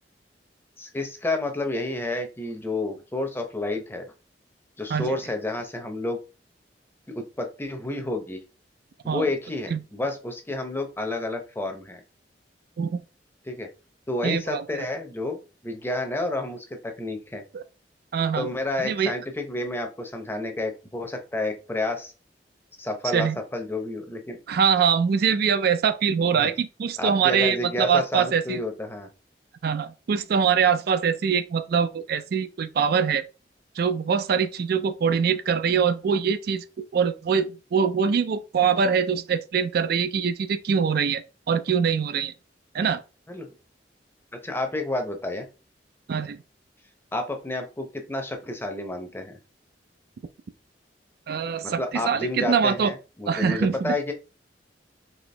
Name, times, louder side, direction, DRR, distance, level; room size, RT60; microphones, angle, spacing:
voice 1, 0.8-4.1 4.8-6.2 7.1-8.4 9.1-12.0 13.5-13.7 14.1-17.4 18.4-22.1 22.8-24.4 26.4-26.5 27.0-29.1 43.3-43.5 44.4-45.5 47.1-49.4 51.6-54.1, left 2 dB, 15° left, 0.7 m, -30 dB
voice 2, 14.2-14.9 17.5-17.6 18.1-18.5 18.8-19.1 23.1-23.4 24.5-28.6 29.6-33.2 33.8-41.2 41.5-42.3 42.7-43.0 46.1-46.4 51.3-52.9 53.3-53.9, right 6 dB, 60° right, 0.4 m, -23 dB
4.2 x 2.9 x 3.2 m
head